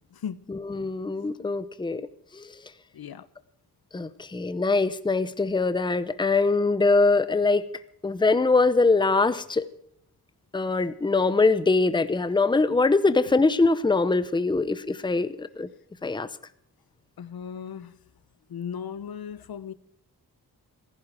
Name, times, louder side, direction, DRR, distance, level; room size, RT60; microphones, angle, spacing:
voice 1, 0.5-2.0 2.3-2.5 3.9-7.7 8.0-9.6 10.5-15.7 16.0-16.3, left 3 dB, 10° left, 0.7 m, -23 dB
voice 2, 2.9-3.2 17.2-17.9 18.5-19.7, left 7 dB, 75° left, 0.9 m, -36 dB
16.0 x 15.0 x 4.8 m
wide cardioid pair, 135°, 37 cm